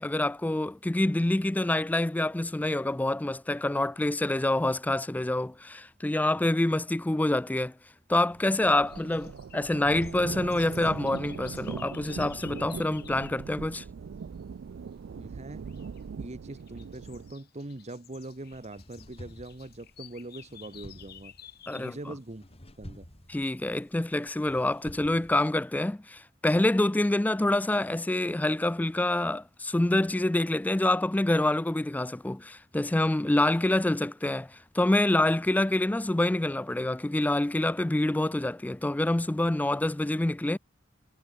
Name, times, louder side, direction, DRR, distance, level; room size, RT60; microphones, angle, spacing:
voice 1, 0.0-7.7 8.1-13.8 21.7-22.0 23.3-40.6, left 1 dB, 10° left, 0.3 m, -26 dB
sound 1, 8.3-17.3, right 6 dB, 70° right, 0.4 m, -41 dB
sound 2, 8.8-13.4 15.7-16.0 16.5-22.1, left 11 dB, 55° left, 1.0 m, -52 dB
voice 2, 15.1-15.6 16.2-21.3 21.7-22.4 22.8-23.1, right 2 dB, 35° right, 1.2 m, -42 dB
sound 3, 18.2-25.6, equal, 30° left, 4.4 m, -51 dB
head